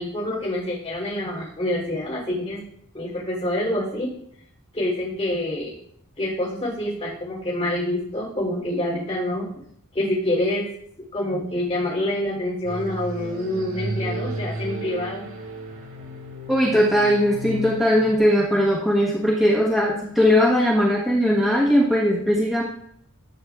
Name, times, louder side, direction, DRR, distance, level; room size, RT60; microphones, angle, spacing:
voice 1, 0.0-2.6 2.9-4.1 4.7-5.7 6.2-9.5 9.9-10.7 11.1-15.2, left 1 dB, 25° left, -6 dB, 3.2 m, -26 dB
sound 1, 12.6-18.2, right 1 dB, 80° right, 4.0 m, -33 dB
voice 2, 16.5-22.6, equal, ahead, -5 dB, 1.3 m, -19 dB
15.0 x 8.5 x 2.4 m, 0.69 s
head